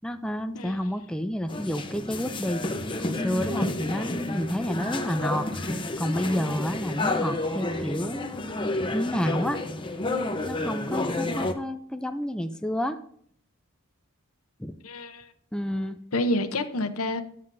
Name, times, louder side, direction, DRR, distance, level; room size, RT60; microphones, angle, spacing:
voice 1, 0.0-2.6 3.0-8.6 8.9-9.6 10.4-13.0 14.6-14.7 15.5-16.0, equal, 5° left, 7 dB, 0.4 m, -30 dB
sound 1, 1.5-11.5, left 2 dB, 25° left, 0.8 m, -30 dB
voice 2, 14.8-15.3 16.1-17.2, left 1 dB, 80° left, 10 dB, 0.8 m, -28 dB
13.0 x 9.5 x 2.6 m, 0.63 s
head